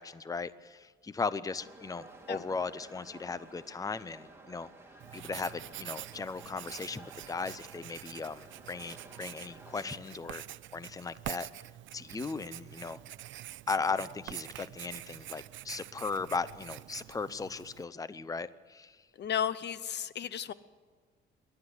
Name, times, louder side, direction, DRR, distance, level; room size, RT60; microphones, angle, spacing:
voice 1, 0.0-4.7 5.1-10.4 10.7-11.5 11.9-13.0 13.7-19.0, left 4 dB, 15° left, 16 dB, 0.7 m, -37 dB
sound 1, 1.6-10.0, right 2 dB, 10° right, 3.2 m, -53 dB
Writing, 5.0-17.8, right 14 dB, 75° right, 0.5 m, -46 dB
voice 2, 19.2-20.5, left 9 dB, 60° left, 16 dB, 0.9 m, -33 dB
27.5 x 12.0 x 8.1 m, 1.5 s
cardioid pair, 90°, 20 cm